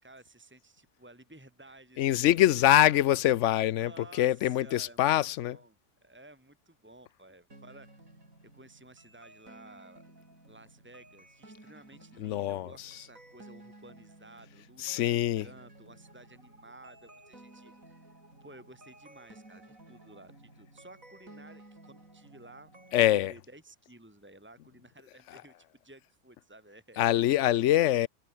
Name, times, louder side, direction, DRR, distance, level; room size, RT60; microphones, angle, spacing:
voice 1, 0.0-3.0 3.8-5.1 5.4-10.1 10.4-18.1 18.4-27.2, right 2 dB, 5° right, 3.4 m, -54 dB
voice 2, 2.0-5.6 12.2-13.1 14.8-15.5 22.9-23.3 25.3-25.4 27.0-28.1, left 13 dB, 65° left, 0.8 m, -25 dB
sound 1, 7.5-23.2, right 1 dB, 55° right, 8.1 m, -55 dB
omnidirectional pair, 1.7 m